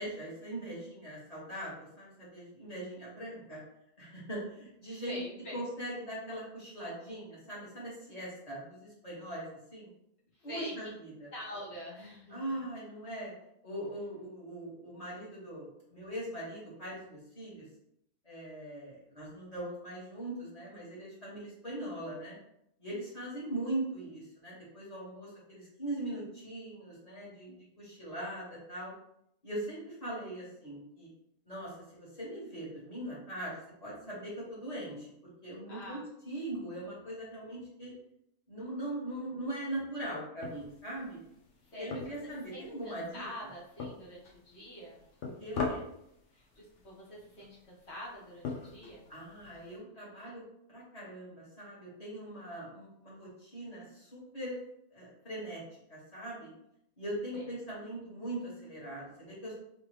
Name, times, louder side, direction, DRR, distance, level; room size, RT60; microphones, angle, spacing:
voice 1, 0.0-3.6 4.0-5.2 5.5-9.9 10.4-11.3 12.3-13.3 13.6-17.7 18.2-22.4 22.8-28.9 29.4-31.1 31.5-35.1 35.4-36.0 36.3-37.9 38.5-41.2 41.8-43.3 45.4-45.8 49.1-54.6 54.9-55.6 55.9-56.5 57.0-59.5, right 1 dB, 30° left, -8 dB, 1.8 m, -41 dB
voice 2, 4.9-5.6 10.4-10.7 11.3-12.5 35.7-36.1 41.7-45.0 46.3-49.1 57.3-57.5, equal, 60° left, -6 dB, 1.7 m, -45 dB
sound 1, 40.4-49.8, left 4 dB, 75° left, 1.1 m, -43 dB
3.6 x 3.4 x 3.1 m, 0.75 s
omnidirectional pair, 1.3 m